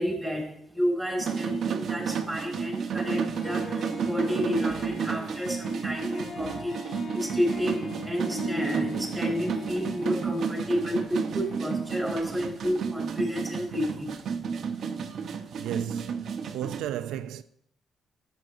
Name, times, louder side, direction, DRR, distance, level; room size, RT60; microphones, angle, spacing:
voice 1, 0.0-14.2, equal, 5° right, 3.3 m, -31 dB
sound 1, 1.2-16.8, right 6 dB, 65° right, 0.9 m, -32 dB
Harp, 3.0-3.1 3.3-12.8, left 2 dB, 55° left, 1.8 m, -40 dB
voice 2, 15.6-17.4, right 11 dB, 90° right, 0.4 m, -34 dB
11.0 x 7.8 x 2.6 m
cardioid pair, 90°, 0 cm